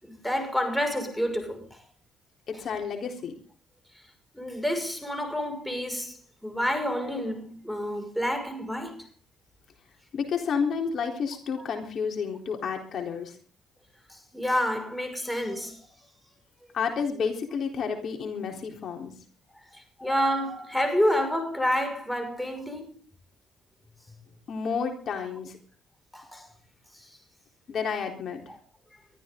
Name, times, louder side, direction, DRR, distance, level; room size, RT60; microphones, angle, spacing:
voice 1, 0.0-1.8 4.3-9.1 14.1-15.8 19.7-22.9 26.1-26.5 26.9-27.1 28.5-28.6, equal, ahead, 5.9 m, -29 dB
voice 2, 2.5-3.3 10.1-13.3 16.7-19.1 24.5-25.6 27.7-28.4, left 6 dB, 60° left, 3.9 m, -30 dB
23.0 x 13.5 x 3.9 m
cardioid pair, 95°, 0 cm